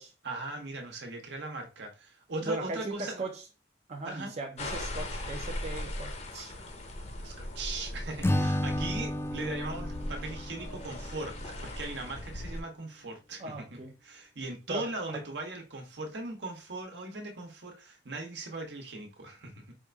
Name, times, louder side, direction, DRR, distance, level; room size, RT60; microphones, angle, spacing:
voice 1, 0.2-3.2 4.0-4.4 7.2-19.7, right 2 dB, 70° right, 1.1 m, -39 dB
voice 2, 2.4-3.4 3.9-6.5 8.3-8.5 13.4-13.9 14.7-15.2, right 2 dB, 35° right, 0.5 m, -38 dB
sound 1, 4.6-12.6, left 1 dB, 35° left, 0.7 m, -39 dB
Acoustic guitar / Strum, 8.2-11.5, left 1 dB, 15° left, 0.3 m, -32 dB
4.8 x 2.6 x 3.3 m
head